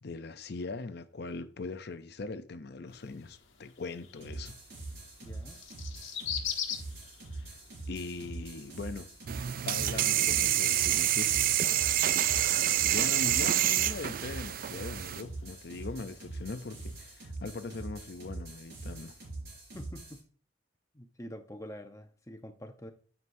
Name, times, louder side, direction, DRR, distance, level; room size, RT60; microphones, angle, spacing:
voice 1, 0.0-4.6 7.3-7.6 7.9-9.1 9.6-11.6 12.5-19.2, left 3 dB, 55° left, 0.6 m, -41 dB
sound 1, 2.9-17.1, left 8 dB, 85° left, 1.3 m, -45 dB
sound 2, 4.2-20.2, right 2 dB, 65° right, 4.0 m, -43 dB
voice 2, 5.2-5.6 19.7-20.2 20.9-22.9, equal, 15° left, 0.9 m, -46 dB
sound 3, 9.3-15.2, right 12 dB, 45° right, 0.3 m, -27 dB
9.4 x 7.2 x 2.7 m
head